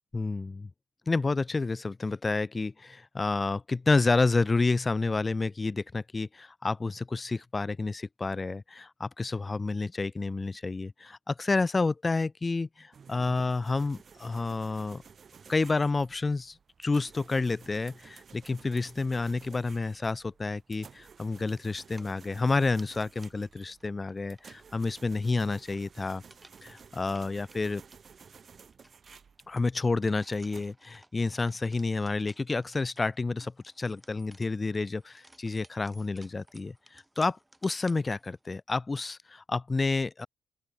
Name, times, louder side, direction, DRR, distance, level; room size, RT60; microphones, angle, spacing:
voice 1, 0.1-0.7 1.1-15.0 15.5-26.2 26.6-27.8 29.5-40.3, left 3 dB, 25° left, 0.7 m, -29 dB
sound 1, 12.9-30.7, right 6 dB, 45° right, 1.3 m, -54 dB
sound 2, 21.9-38.6, right 1 dB, 10° right, 2.9 m, -59 dB
open air
cardioid pair, 90°, 0 cm